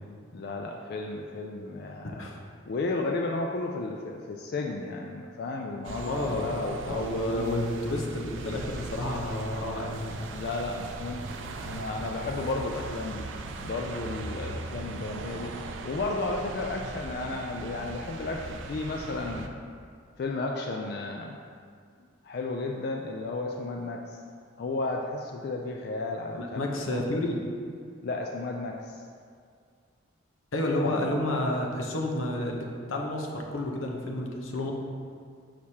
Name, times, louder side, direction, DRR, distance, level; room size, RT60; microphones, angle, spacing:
voice 1, 0.3-2.3 2.7-6.8 7.1-7.6 10.3-13.3 13.6-15.5 15.8-19.6 20.2-21.4 22.2-24.2 24.6-27.0 28.0-29.0 30.8-31.0, left 3 dB, 50° left, 1 dB, 0.3 m, -33 dB
sound 1, 5.8-19.5, right 3 dB, 75° right, 0.4 m, -39 dB
voice 2, 6.0-6.5 6.9-10.2 26.3-27.4 30.5-34.7, left 1 dB, 90° left, 0 dB, 0.8 m, -30 dB
6.4 x 5.8 x 2.8 m, 2.2 s
head